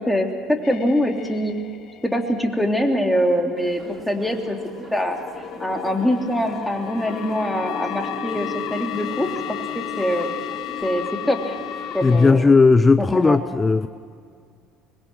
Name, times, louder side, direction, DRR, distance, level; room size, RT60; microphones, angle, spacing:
voice 1, 0.0-1.6 2.0-4.6 4.9-5.2 5.6-10.3 10.8-11.6 11.9-12.5 13.0-13.4, equal, 5° left, 2 dB, 3.3 m, -23 dB
sound 1, 0.6-2.4 3.2-12.3, left 10 dB, 55° left, 1.0 m, -33 dB
sound 2, 3.6-12.3, right 3 dB, 30° right, 2.6 m, -42 dB
voice 2, 12.0-13.9, left 4 dB, 20° left, 14 dB, 0.6 m, -16 dB
25.0 x 21.5 x 6.3 m, 2.2 s
hypercardioid pair, 70°, 0 cm